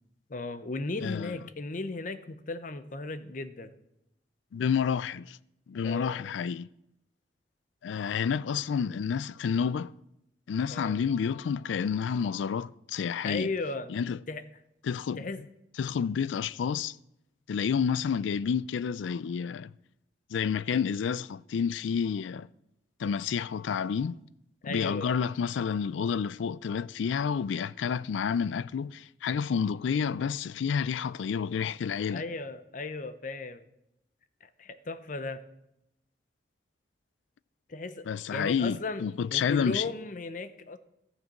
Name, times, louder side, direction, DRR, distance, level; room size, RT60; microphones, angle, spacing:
voice 1, 0.3-3.7 5.8-6.2 10.7-11.0 13.2-13.9 14.3-14.4 15.2-15.4 24.6-25.2 32.1-33.7 34.4-35.4 37.7-39.0 39.3-40.8, left 3 dB, 45° left, 0.7 m, -36 dB
voice 2, 1.0-1.4 4.5-5.4 5.7-6.7 7.8-9.9 10.5-13.5 13.9-14.2 14.8-15.3 15.8-17.0 17.5-19.7 20.3-22.5 23.0-24.2 24.6-32.2 38.1-39.9, left 7 dB, 85° left, 0.3 m, -29 dB
14.0 x 6.6 x 6.0 m
head